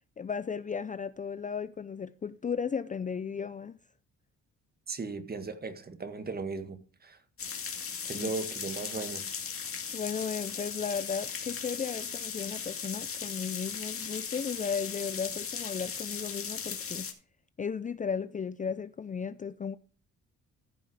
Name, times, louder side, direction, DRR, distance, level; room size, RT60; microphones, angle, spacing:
voice 1, 0.2-3.8 8.1-8.3 9.9-17.1 17.6-19.8, left 6 dB, 25° left, 0.5 m, -35 dB
voice 2, 4.9-7.2 8.0-9.3, right 4 dB, 30° right, 1.7 m, -37 dB
sound 1, 7.4-17.1, left 6 dB, 45° left, 2.2 m, -37 dB
14.5 x 5.6 x 4.9 m
cardioid pair, 90°, 30 cm